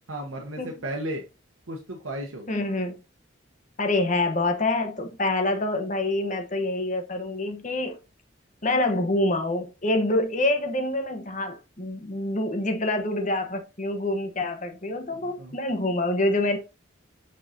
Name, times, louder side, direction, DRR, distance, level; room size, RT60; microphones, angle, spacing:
voice 1, 0.1-1.2 1.7-2.6 15.1-15.6, right 1 dB, 80° right, 1.0 m, -34 dB
voice 2, 2.5-3.0 3.8-8.0 8.6-16.6, left 2 dB, 40° left, 1.0 m, -26 dB
6.4 x 5.4 x 2.7 m
head